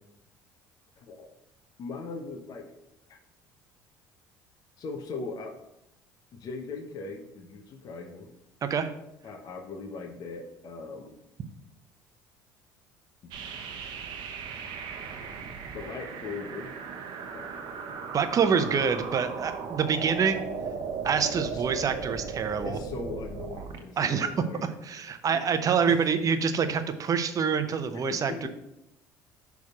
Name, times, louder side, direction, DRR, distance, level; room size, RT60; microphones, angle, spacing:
voice 1, 1.0-1.3 1.8-2.7 3.1-3.2 4.8-5.6 6.3-8.3 9.2-11.2 13.2-13.3 15.7-16.7 17.3-17.7 21.2-21.7 22.1-22.3 22.6-24.7 25.3-25.4 25.9-26.0 28.3-28.5, left 4 dB, 50° left, 5 dB, 0.8 m, -39 dB
voice 2, 8.6-8.9 18.1-20.4 21.0-22.8 24.0-24.3 24.8-28.5, right 6 dB, 45° right, 9 dB, 0.8 m, -26 dB
sound 1, 13.3-23.8, right 5 dB, 65° right, 1.0 m, -37 dB
6.4 x 3.5 x 6.0 m, 0.84 s
supercardioid pair, 75°, 8 cm